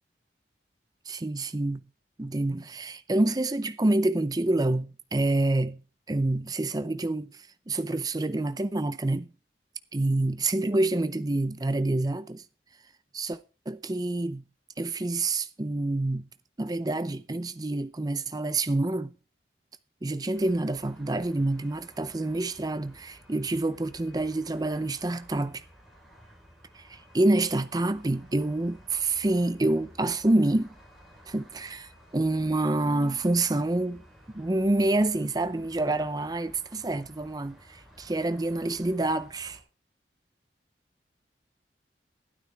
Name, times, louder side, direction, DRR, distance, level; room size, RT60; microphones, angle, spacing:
voice 1, 1.1-1.9 2.2-5.8 6.1-7.4 7.7-9.3 9.9-12.4 13.1-13.4 13.7-14.4 14.8-16.3 16.6-19.1 20.0-25.6 26.7-30.7 31.3-34.0 34.3-39.6, right 2 dB, 20° right, 0.5 m, -27 dB
sound 1, 20.3-39.6, equal, ahead, 3.4 m, -54 dB
12.5 x 12.0 x 3.4 m
head